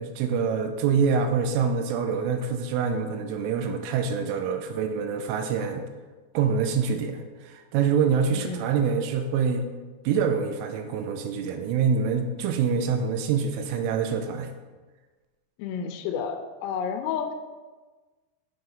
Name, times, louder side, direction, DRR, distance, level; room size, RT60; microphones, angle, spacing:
voice 1, 0.0-5.9 6.3-9.6 10.0-14.5, right 6 dB, 85° right, 6 dB, 3.2 m, -25 dB
voice 2, 8.3-8.8 15.6-17.3, left 7 dB, 90° left, 5 dB, 3.3 m, -31 dB
8.0 x 7.8 x 5.3 m, 1.3 s
omnidirectional pair, 5.9 m